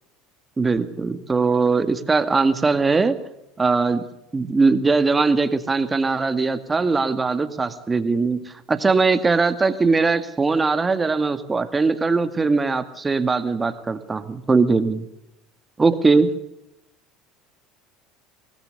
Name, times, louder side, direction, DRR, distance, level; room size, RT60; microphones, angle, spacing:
voice 1, 0.6-3.2 3.6-4.0 4.3-15.0 15.8-16.3, right 4 dB, 20° right, 9 dB, 2.0 m, -20 dB
24.0 x 18.5 x 6.7 m, 0.86 s
supercardioid pair, 105°, 0 cm